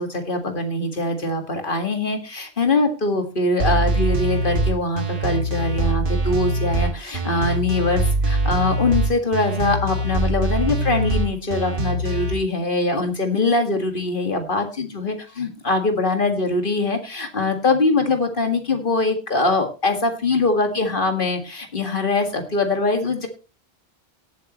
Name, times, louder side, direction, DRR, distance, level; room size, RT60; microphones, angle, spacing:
voice 1, 0.0-23.3, left 2 dB, 55° left, 6 dB, 2.1 m, -22 dB
sound 1, 3.6-12.3, right 1 dB, 55° right, 1.5 m, -23 dB
18.0 x 8.4 x 3.1 m, 0.31 s
omnidirectional pair, 1.1 m